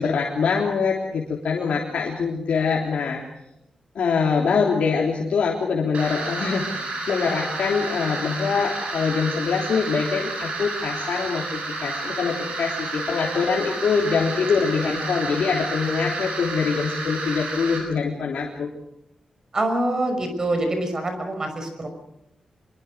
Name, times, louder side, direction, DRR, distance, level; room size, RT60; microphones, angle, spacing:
voice 1, 0.0-3.2 4.0-18.7, left 5 dB, 85° left, -2 dB, 3.6 m, -24 dB
sound 1, 5.9-17.8, right 3 dB, 90° right, 7.7 m, -31 dB
voice 2, 19.5-21.9, right 1 dB, 30° right, 6 dB, 5.6 m, -25 dB
25.0 x 23.0 x 6.4 m, 0.85 s
wide cardioid pair, 165°, 2 cm